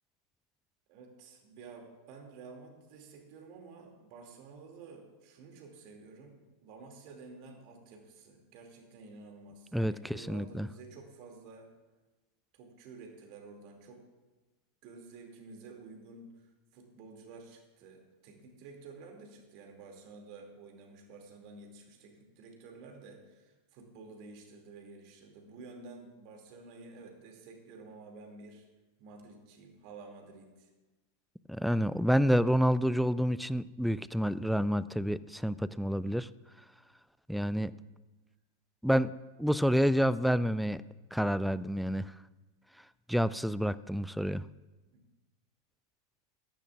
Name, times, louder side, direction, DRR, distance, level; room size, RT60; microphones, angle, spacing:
voice 1, 0.9-11.7 12.5-14.0 14.8-16.3 16.7-28.7 29.0-30.7 44.9-45.0, right 4 dB, 45° right, 2 dB, 2.4 m, -51 dB
voice 2, 9.7-10.7 31.5-36.3 37.3-37.7 38.8-39.1 39.4-40.8 41.1-42.1 43.1-44.4, equal, ahead, 17 dB, 0.3 m, -28 dB
18.0 x 13.5 x 2.5 m, 1.2 s
figure-of-eight pair, 90°, 0 cm